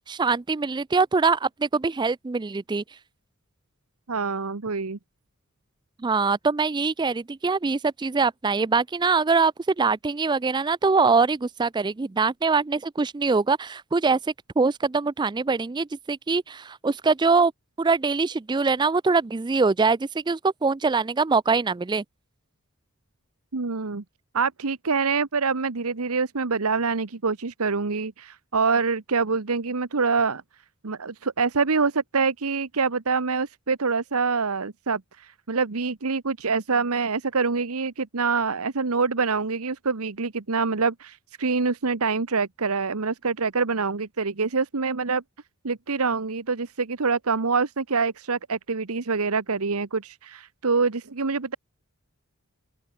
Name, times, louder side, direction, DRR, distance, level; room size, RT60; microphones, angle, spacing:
voice 1, 0.1-2.8 6.0-14.2 14.6-17.5 17.8-22.0, right 4 dB, 20° right, 0.4 m, -23 dB
voice 2, 4.1-5.0 23.5-24.0 24.3-30.4 30.8-45.2 45.6-51.6, right 4 dB, 80° right, 1.1 m, -25 dB
open air
head